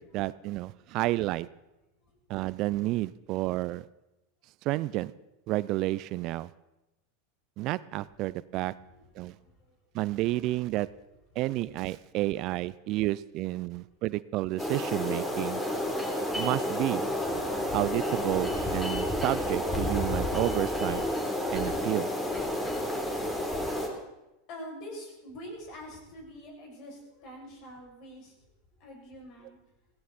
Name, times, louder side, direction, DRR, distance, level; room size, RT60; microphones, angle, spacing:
voice 1, 0.0-1.5 2.3-3.8 4.6-5.1 5.5-6.5 7.6-8.7 9.2-9.3 9.9-10.9 11.4-15.6 16.3-17.0 17.7-21.0 21.5-22.1, right 17 dB, 50° right, 19 dB, 0.5 m, -30 dB
voice 2, 8.9-9.8 24.5-28.5 28.7-29.6, equal, 50° left, 0 dB, 7.1 m, -46 dB
sound 1, 14.6-23.9, left 1 dB, 10° left, 3.5 m, -30 dB
16.0 x 16.0 x 4.3 m, 0.97 s
hypercardioid pair, 100°, 0 cm